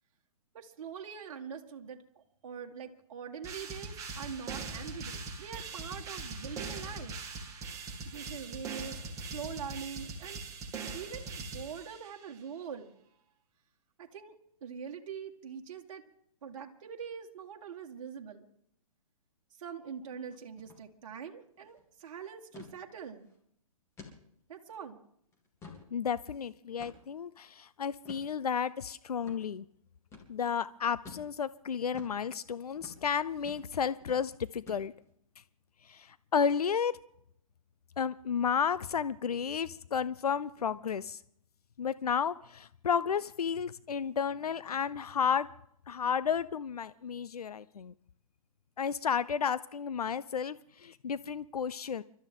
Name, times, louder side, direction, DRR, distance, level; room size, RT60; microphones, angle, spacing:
voice 1, 0.5-7.2 8.0-10.4 10.9-12.9 14.0-14.3 14.6-16.0 16.4-18.5 19.6-23.3 24.5-25.0, right 7 dB, 55° right, 2 dB, 1.8 m, -43 dB
sound 1, 3.4-12.3, right 4 dB, 15° right, 2.6 m, -41 dB
sound 2, 20.6-20.8 21.1-21.2 21.6-21.8 22.5-22.7 23.2-23.3 24.0-24.2 24.7-24.8 25.3-25.9 26.8-27.2 28.0-28.3 29.2-29.4 30.1-30.3 31.0-31.3 31.9-32.2 32.8-33.0 33.4-33.7 34.0-34.2 34.7-35.1, left 4 dB, 15° left, 3.0 m, -49 dB
voice 2, 25.9-29.6 30.3-34.9 35.8-36.9 38.0-41.2 41.8-45.5 45.9-47.9 48.8-52.0, left 7 dB, 85° left, 16 dB, 0.6 m, -32 dB
30.0 x 13.0 x 3.8 m, 0.71 s
hypercardioid pair, 130°, 19 cm